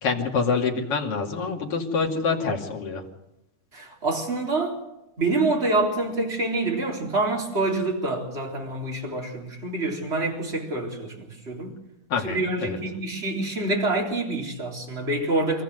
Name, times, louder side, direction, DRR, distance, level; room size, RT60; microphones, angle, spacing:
voice 1, 0.0-3.0 12.1-12.8, left 5 dB, 45° left, 0 dB, 3.2 m, -26 dB
voice 2, 3.7-4.8 5.2-11.7 12.2-15.6, right 2 dB, 20° right, 0 dB, 3.8 m, -26 dB
25.5 x 14.5 x 8.0 m, 0.90 s
omnidirectional pair, 3.6 m